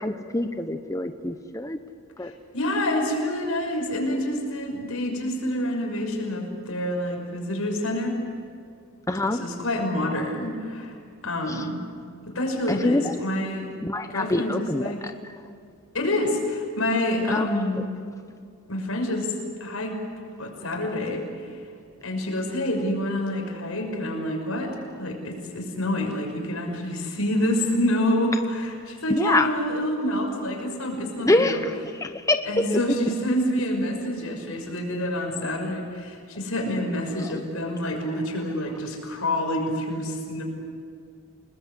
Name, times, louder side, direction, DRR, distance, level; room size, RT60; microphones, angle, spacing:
voice 1, 0.0-1.8 2.2-2.3 9.1-9.4 11.5-11.7 12.7-13.1 13.8-15.3 17.3-17.6 29.1-29.5 31.2-33.1 37.2-37.3, left 2 dB, 15° left, 7 dB, 0.9 m, -25 dB
voice 2, 2.5-8.2 9.4-10.9 11.2-11.8 12.2-13.7 14.1-15.0 15.9-17.8 18.7-19.3 19.6-20.0 20.4-21.5 22.0-31.6 32.4-40.4, left 1 dB, 80° left, 2 dB, 6.2 m, -27 dB
29.5 x 20.0 x 8.3 m, 2.3 s
head